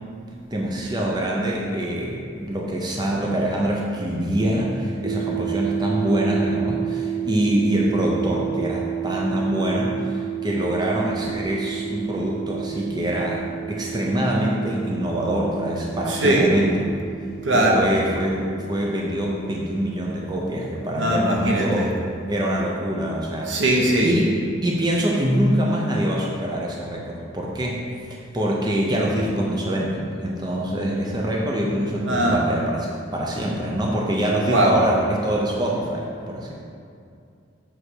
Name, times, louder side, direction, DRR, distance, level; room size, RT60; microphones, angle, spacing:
voice 1, 0.5-13.4 13.7-16.9 17.5-21.9 22.3-23.6 24.0-24.3 24.6-27.8 28.1-36.5, right 1 dB, 20° right, -3 dB, 0.8 m, -24 dB
sound 1, 5.0-20.5, right 11 dB, 45° right, 0.3 m, -31 dB
voice 2, 16.1-16.5 17.4-17.9 21.0-21.9 23.5-24.1 32.1-32.4 34.5-34.8, right 1 dB, 75° right, -2 dB, 1.3 m, -19 dB
8.0 x 3.6 x 6.2 m, 2.4 s
head